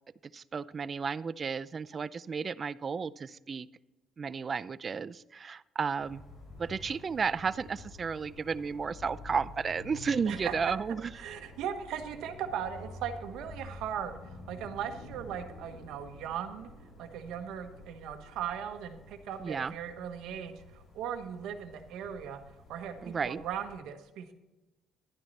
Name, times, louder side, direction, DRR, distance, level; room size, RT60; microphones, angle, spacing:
voice 1, 0.2-3.7 4.2-6.2 6.6-11.3 19.4-19.7 23.0-23.4, right 5 dB, 40° right, 17 dB, 0.4 m, -33 dB
sound 1, 6.0-23.8, left 2 dB, 50° left, 4.3 m, -50 dB
voice 2, 11.2-16.7 17.0-22.4 22.7-24.3, right 8 dB, 85° right, 7 dB, 1.2 m, -38 dB
11.5 x 9.8 x 4.1 m, 1.0 s
cardioid pair, 95°, 0 cm